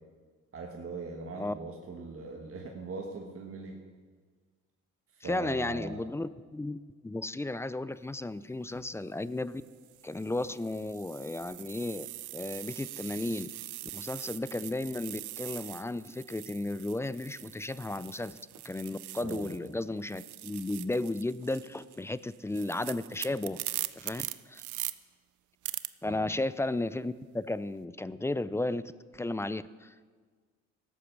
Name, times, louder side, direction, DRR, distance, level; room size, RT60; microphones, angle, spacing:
voice 1, 0.5-3.8 5.2-6.1 19.2-19.7 26.0-26.3, right 3 dB, 50° right, 1 dB, 1.5 m, -41 dB
voice 2, 5.2-9.6 10.0-12.1 12.3-13.5 13.9-18.4 18.6-23.6 23.9-24.6 26.0-28.8 29.1-29.9, left 2 dB, 10° left, 16 dB, 0.3 m, -34 dB
sound 1, 8.6-8.8 9.6-19.7 20.0-24.9 25.6-25.9, right 15 dB, 75° right, 0.5 m, -42 dB
14.0 x 8.3 x 6.1 m, 1.5 s
cardioid pair, 90°, 30 cm